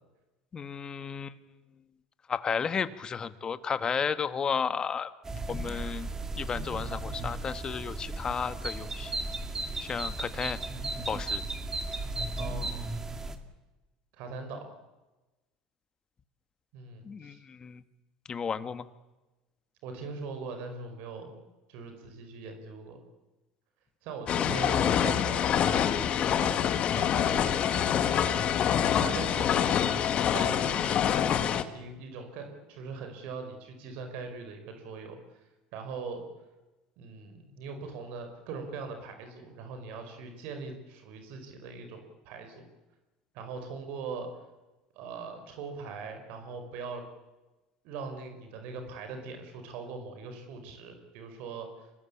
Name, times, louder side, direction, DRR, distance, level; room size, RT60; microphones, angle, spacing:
voice 1, 0.5-1.4 2.3-5.1 5.5-6.1 6.4-9.1 9.8-10.6 11.1-11.5 17.0-17.8 18.3-18.9, left 6 dB, 30° left, 12 dB, 1.6 m, -33 dB
sound 1, 5.2-13.4, right 2 dB, 20° right, 2.5 m, -35 dB
voice 2, 12.4-12.9 14.1-14.7 16.7-17.4 19.8-21.4 21.7-23.0 24.0-25.9 26.4-28.7 29.0-30.0 30.3-31.4 31.7-35.2 35.7-36.3 37.0-42.0 42.2-42.7 43.3-44.3 45.0-47.0 47.8-51.7, right 4 dB, 70° right, 6 dB, 5.6 m, -41 dB
sound 2, 24.3-31.6, left 9 dB, 45° left, 1.8 m, -26 dB
26.0 x 20.0 x 8.7 m, 1.1 s
supercardioid pair, 105°, 3 cm